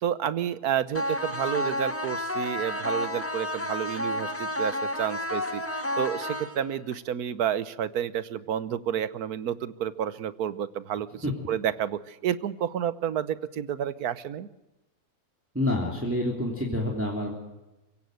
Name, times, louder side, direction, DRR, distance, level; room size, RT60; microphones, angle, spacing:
voice 1, 0.0-14.5, right 9 dB, 80° right, 16 dB, 1.4 m, -30 dB
sound 1, 0.9-6.9, left 1 dB, 10° left, 1.6 m, -31 dB
voice 2, 15.5-17.3, left 1 dB, 10° right, -1 dB, 3.1 m, -27 dB
24.5 x 16.0 x 7.8 m, 1.0 s
omnidirectional pair, 1.6 m